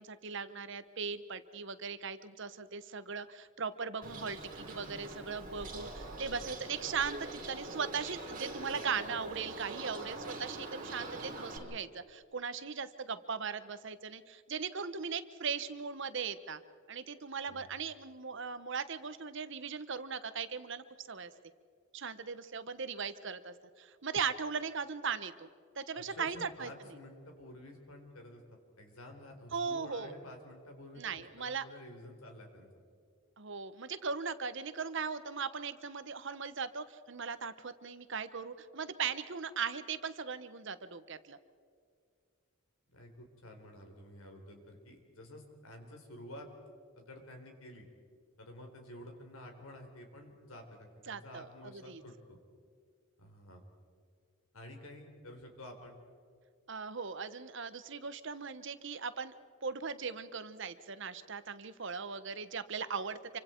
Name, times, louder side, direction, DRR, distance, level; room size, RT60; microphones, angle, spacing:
voice 1, 0.0-16.6 16.9-21.3 21.9-25.5 25.8-26.7 29.5-30.1 31.0-31.6 33.4-41.4 51.1-52.0 56.7-59.3 59.6-63.4, right 5 dB, 60° right, 12 dB, 1.0 m, -39 dB
Bird, 4.0-11.6, right 2 dB, 40° right, 4.4 m, -44 dB
voice 2, 26.1-28.4 28.8-32.7 42.9-46.5 47.0-47.9 48.4-52.4 53.2-53.6 54.5-56.0, left 1 dB, 85° left, 3 dB, 4.0 m, -51 dB
27.5 x 24.5 x 4.5 m, 2.2 s
head